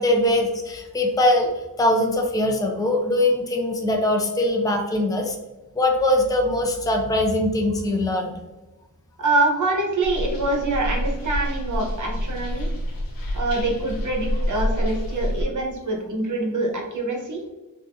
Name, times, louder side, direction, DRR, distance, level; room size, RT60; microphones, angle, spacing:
voice 1, 0.0-1.5 1.8-5.4 5.8-8.4, left 1 dB, 10° left, 2 dB, 0.5 m, -21 dB
voice 2, 9.2-12.7 13.3-17.4, right 2 dB, 60° right, 1 dB, 0.9 m, -25 dB
sound 1, 10.0-15.4, equal, 80° left, 0.7 m, -27 dB
3.6 x 2.6 x 2.5 m, 1.1 s
cardioid pair, 55°, 34 cm